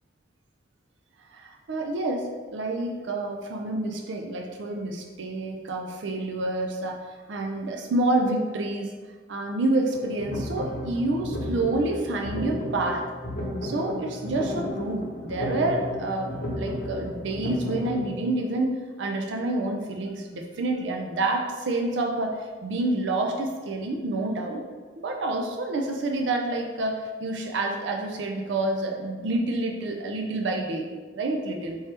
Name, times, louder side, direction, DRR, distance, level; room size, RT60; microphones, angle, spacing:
voice 1, 1.3-7.0 7.3-8.9 9.3-13.1 13.6-24.6 25.0-31.8, right 2 dB, 70° right, 2 dB, 0.4 m, -28 dB
sound 1, 9.9-18.0, left 1 dB, 60° left, 0.9 m, -33 dB
4.6 x 2.9 x 3.3 m, 1.4 s
head